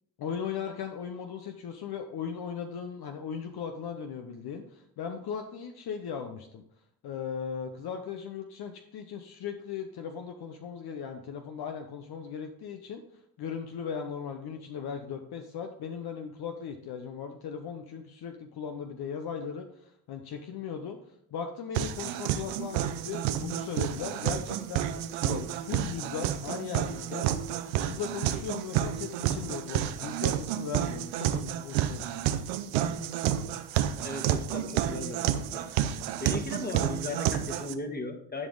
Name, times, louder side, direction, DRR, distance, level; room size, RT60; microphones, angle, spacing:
voice 1, 0.2-6.6 7.0-13.0 13.4-21.0 21.3-27.3 27.7-32.3, left 7 dB, 55° left, 5 dB, 0.9 m, -38 dB
sound 1, 21.7-37.7, right 11 dB, 85° right, 0.7 m, -30 dB
voice 2, 34.0-35.7 36.2-38.5, left 2 dB, 20° left, 5 dB, 1.6 m, -37 dB
11.0 x 5.1 x 3.9 m, 0.72 s
supercardioid pair, 65°, 45 cm